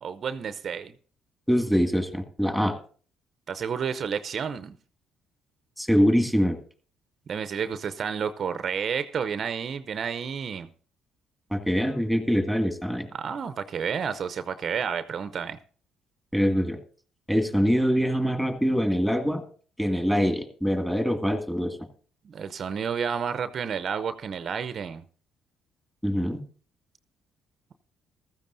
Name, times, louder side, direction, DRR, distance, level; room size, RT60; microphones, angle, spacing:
voice 1, 0.0-0.9 3.5-4.8 7.3-10.7 13.1-15.6 22.2-25.0, right 7 dB, 50° right, 0.6 m, -30 dB
voice 2, 1.5-2.8 5.8-6.6 11.5-13.1 16.3-16.8 17.3-19.4 19.8-21.8 26.0-26.4, equal, 5° left, 2.0 m, -24 dB
15.0 x 13.5 x 2.6 m
hypercardioid pair, 60°, 0 cm